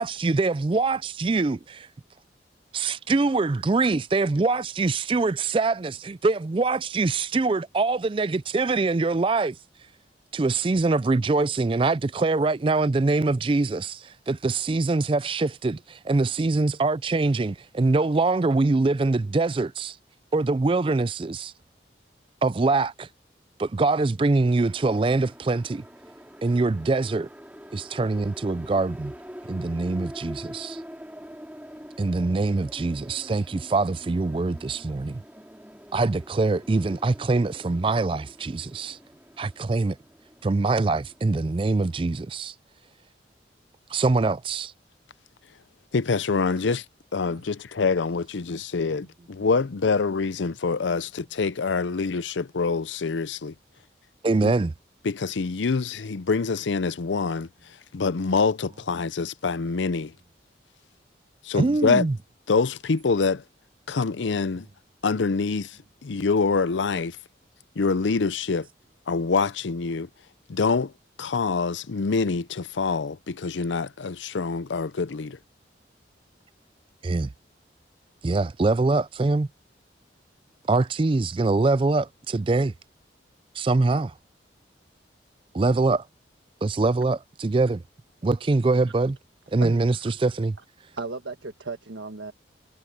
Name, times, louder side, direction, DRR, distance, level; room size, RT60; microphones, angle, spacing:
voice 1, 0.0-1.9 2.7-9.6 10.3-20.0 20.3-21.5 22.4-23.1 23.6-25.8 26.4-27.3 27.7-29.1 29.5-30.8 32.0-35.2 35.9-39.0 39.4-40.0 40.4-42.5 43.9-44.7 54.2-54.7 61.6-62.2 77.0-77.3 78.2-79.5 80.7-82.7 83.6-84.1 85.5-86.0 86.6-87.8 88.2-89.2 89.5-90.6, right 3 dB, 30° right, 0.4 m, -24 dB
sound 1, 24.5-42.3, equal, 10° right, 4.1 m, -45 dB
voice 2, 45.9-46.8 47.1-53.5 54.4-54.5 55.0-57.5 57.9-60.1 61.4-62.1 62.5-63.4 63.9-64.7 65.0-67.2 67.8-68.7 69.1-70.1 70.5-70.9 71.2-75.4, left 4 dB, 85° left, 0.6 m, -25 dB
voice 3, 90.9-92.3, right 3 dB, 90° right, 1.5 m, -34 dB
head